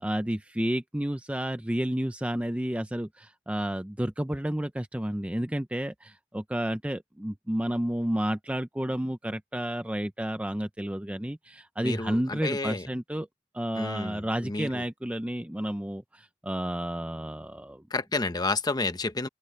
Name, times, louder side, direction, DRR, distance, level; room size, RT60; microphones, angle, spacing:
voice 1, 0.0-13.3 13.5-17.8, right 1 dB, 5° right, 0.5 m, -31 dB
voice 2, 11.8-12.9 13.8-14.8 17.9-19.3, left 3 dB, 20° left, 0.9 m, -30 dB
open air
head